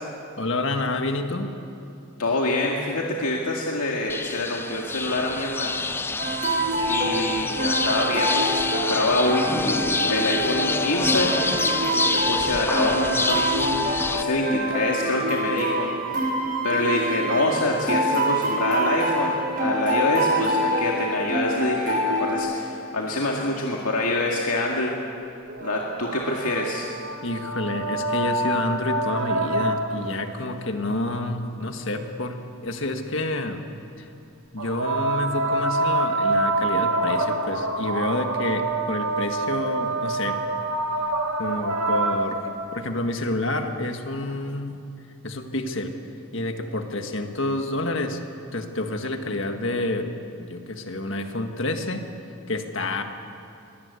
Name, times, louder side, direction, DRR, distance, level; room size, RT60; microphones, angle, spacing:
voice 1, 0.4-1.5 27.2-32.4 32.6-33.6 34.0-34.1 34.5-40.4 41.4-44.8 45.2-45.9 46.3-48.2 48.5-50.1 50.5-52.0 52.5-53.0, left 2 dB, 60° left, 5 dB, 1.8 m, -28 dB
voice 2, 2.2-5.8 6.9-9.8 10.1-11.3 12.3-13.9 14.1-15.9 16.6-24.9 25.6-26.9, left 2 dB, 90° left, -1 dB, 2.1 m, -26 dB
sound 1, 4.1-14.2, left 3 dB, 10° left, 0.4 m, -27 dB
sound 2, 6.2-22.3, right 1 dB, 40° right, 6.9 m, -26 dB
sound 3, 25.5-30.2 34.6-42.8 44.1-44.2, right 2 dB, 90° right, 1.9 m, -26 dB
23.5 x 18.0 x 8.4 m, 2.7 s
head